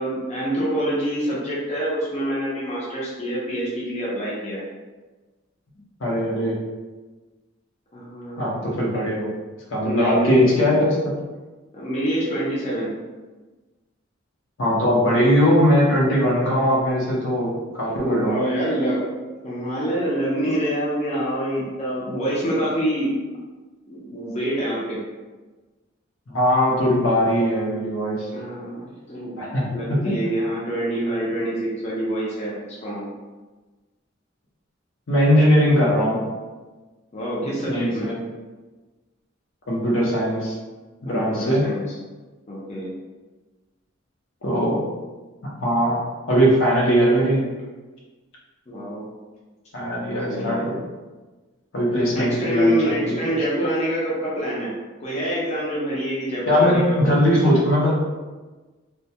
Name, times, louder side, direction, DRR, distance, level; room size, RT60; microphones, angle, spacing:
voice 1, 0.0-4.6 7.9-8.6 9.8-10.5 11.7-12.9 17.9-19.1 19.4-23.2 23.9-25.0 28.3-33.1 37.1-38.1 41.1-41.9 42.5-42.9 48.7-49.0 50.3-50.7 52.1-54.7 55.0-57.1, right 1 dB, 35° left, -7 dB, 0.5 m, -26 dB
voice 2, 6.0-6.6 8.4-9.3 9.7-11.2 14.6-18.4 26.3-28.3 29.4-30.1 35.1-36.2 37.4-38.2 39.7-40.5 41.0-41.7 44.4-44.8 45.4-46.0 46.3-47.4 49.7-50.8 51.7-52.8 53.0-53.3 56.5-57.9, equal, 75° left, -4 dB, 0.7 m, -20 dB
2.2 x 2.1 x 2.7 m, 1.2 s
head